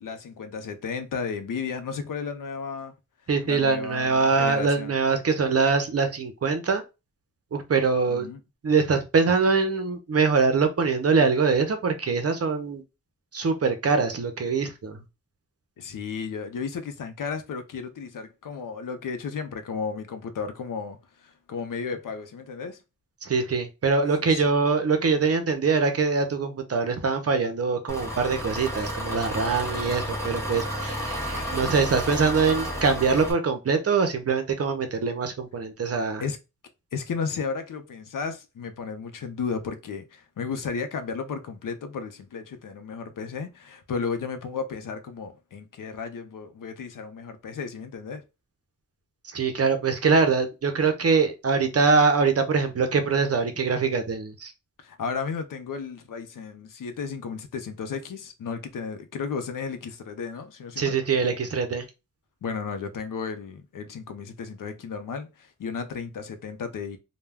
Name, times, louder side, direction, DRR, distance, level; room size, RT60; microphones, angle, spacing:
voice 1, 0.0-2.9 3.4-4.9 8.1-8.4 15.8-22.8 24.3-24.5 31.3-31.6 36.2-36.4 36.9-48.2 54.8-60.9 62.4-67.0, left 5 dB, 75° left, 0.6 m, -34 dB
voice 2, 3.3-6.8 7.5-8.3 8.6-12.8 13.3-15.0 23.2-36.2 49.3-54.5 60.8-61.8, right 4 dB, 50° right, 0.6 m, -23 dB
Engine, 27.9-33.3, equal, 10° left, 0.7 m, -31 dB
2.2 x 2.1 x 3.3 m
wide cardioid pair, 85°, 32 cm